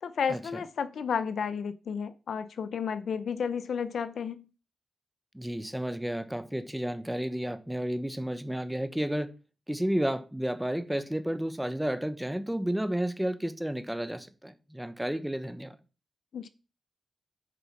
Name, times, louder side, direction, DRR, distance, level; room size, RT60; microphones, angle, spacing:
voice 1, 0.0-4.5 16.3-16.5, left 6 dB, 75° left, 0.7 m, -32 dB
voice 2, 5.3-9.3 9.7-15.8, right 1 dB, 5° right, 1.1 m, -32 dB
8.3 x 5.2 x 5.9 m
cardioid pair, 70°, 0 cm